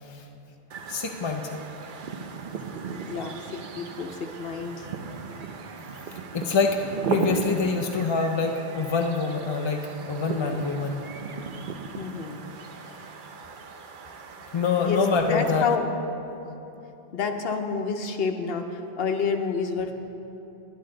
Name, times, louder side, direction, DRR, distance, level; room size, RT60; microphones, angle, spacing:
sound 1, 0.7-15.8, right 5 dB, 60° right, 0.7 m, -36 dB
voice 1, 0.9-1.6 5.0-5.2 6.3-11.0 14.5-15.7, left 4 dB, 45° left, 3 dB, 0.4 m, -26 dB
voice 2, 3.1-4.9 11.9-12.4 12.8-12.9 14.8-15.9 17.1-19.9, left 5 dB, 70° left, 5 dB, 1.0 m, -29 dB
11.5 x 10.5 x 3.8 m, 3.0 s
omnidirectional pair, 1.0 m